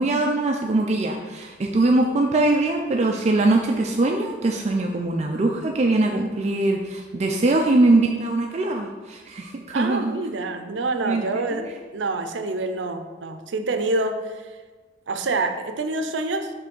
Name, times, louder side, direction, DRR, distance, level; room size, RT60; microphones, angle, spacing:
voice 1, 0.0-10.2 11.1-11.2 11.5-11.6, right 2 dB, 35° right, 2 dB, 0.4 m, -22 dB
voice 2, 9.7-14.5 15.1-16.5, right 2 dB, 85° right, 8 dB, 0.6 m, -27 dB
5.8 x 3.3 x 5.3 m, 1.3 s
head